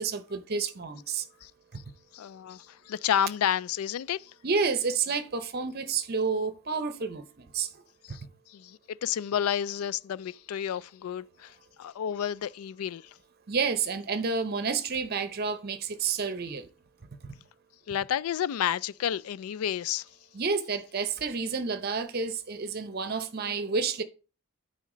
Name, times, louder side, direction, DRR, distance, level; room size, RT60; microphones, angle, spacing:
voice 1, 0.0-1.2 1.7-1.8 4.4-7.7 8.1-8.2 13.5-16.7 17.2-17.4 20.3-24.0, right 5 dB, 45° right, 0.7 m, -30 dB
voice 2, 2.1-4.3 8.1-8.2 8.5-13.0 17.9-20.1, left 9 dB, 80° left, 0.3 m, -30 dB
9.3 x 4.3 x 3.8 m
head